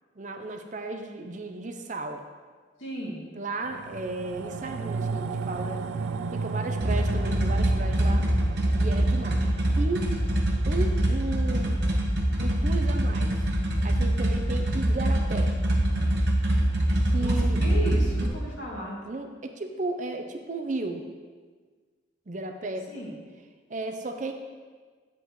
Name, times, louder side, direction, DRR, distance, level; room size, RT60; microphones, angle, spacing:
voice 1, 0.2-2.2 3.3-5.8 6.3-8.3 8.8-9.4 9.8-10.1 10.7-11.8 12.4-13.5 13.8-15.5 17.1-17.6 19.0-21.0 22.3-22.9 23.7-24.3, right 2 dB, 40° right, 5 dB, 0.6 m, -34 dB
voice 2, 2.8-3.3 17.2-19.0 22.9-23.1, equal, 70° left, -5 dB, 2.6 m, -35 dB
sound 1, 3.6-14.2 14.6-14.7, right 4 dB, 85° right, 0.3 m, -35 dB
sound 2, 6.8-18.3, right 1 dB, 60° right, 1.1 m, -24 dB
10.0 x 8.3 x 3.1 m, 1.5 s
head